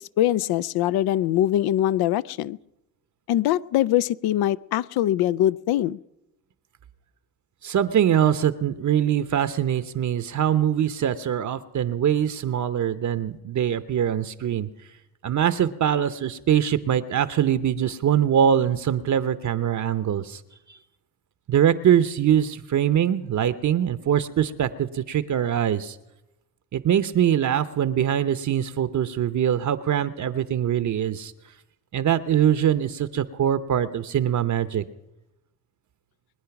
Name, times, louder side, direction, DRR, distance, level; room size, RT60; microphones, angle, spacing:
voice 1, 0.2-2.6 3.3-6.0, left 12 dB, 70° left, 19 dB, 0.5 m, -22 dB
voice 2, 7.6-14.7 15.2-20.4 20.7-20.8 21.5-26.0 26.7-31.3 31.9-34.8, right 9 dB, 50° right, 13 dB, 0.8 m, -23 dB
22.5 x 9.6 x 5.9 m, 0.93 s
supercardioid pair, 75°, 38 cm